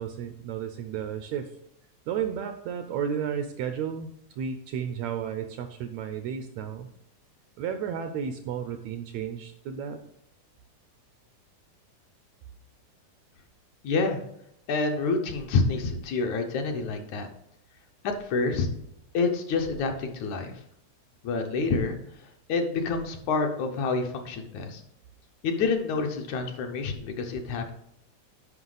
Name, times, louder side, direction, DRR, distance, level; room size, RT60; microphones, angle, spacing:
voice 1, 0.0-1.5 2.1-6.9 7.6-10.0, right 8 dB, 80° right, 8 dB, 1.6 m, -33 dB
voice 2, 13.8-14.2 14.7-17.3 18.0-18.7 19.1-20.5 21.2-22.0 22.5-24.8 25.4-27.7, left 4 dB, 75° left, 4 dB, 2.2 m, -27 dB
9.6 x 5.6 x 3.9 m, 0.77 s
omnidirectional pair, 3.5 m